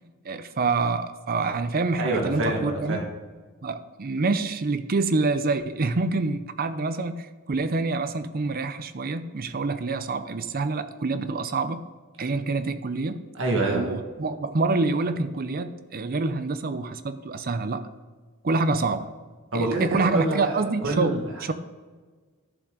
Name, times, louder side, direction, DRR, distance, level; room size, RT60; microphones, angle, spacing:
voice 1, 0.2-3.0 3.6-11.8 12.2-13.3 13.7-17.9 18.4-19.1 19.5-21.5, right 3 dB, 45° right, 12 dB, 0.6 m, -26 dB
voice 2, 2.0-3.0 13.3-13.9 19.5-21.3, right 2 dB, 65° right, 0 dB, 1.7 m, -26 dB
12.0 x 7.2 x 3.8 m, 1.4 s
head